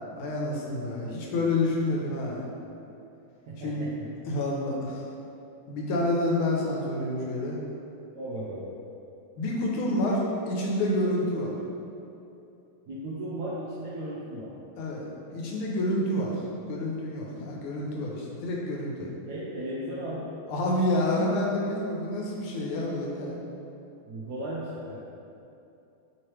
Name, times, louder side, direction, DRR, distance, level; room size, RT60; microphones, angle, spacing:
voice 1, 0.2-2.4 3.6-3.9 4.2-5.0 5.7-7.6 9.4-11.5 14.8-16.4 16.7-19.1 20.5-23.4, left 1 dB, 90° left, -2 dB, 1.5 m, -28 dB
voice 2, 0.9-1.4 3.5-3.9 8.1-8.7 12.9-14.5 19.3-20.3 24.0-25.0, right 1 dB, 80° right, -8 dB, 0.9 m, -36 dB
3.6 x 2.9 x 3.1 m, 2.7 s
omnidirectional pair, 2.2 m